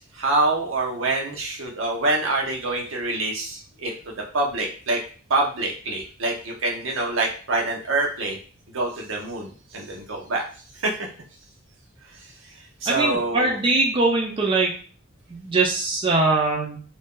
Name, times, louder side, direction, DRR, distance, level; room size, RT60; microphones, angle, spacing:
voice 1, 0.0-5.0 5.3-8.4 8.7-10.4 10.7-11.1 12.8-13.6, right 2 dB, 70° right, 0 dB, 0.8 m, -26 dB
voice 2, 12.9-14.7 15.3-16.8, right 3 dB, 25° right, -2 dB, 0.5 m, -22 dB
2.6 x 2.3 x 3.6 m, 0.40 s
head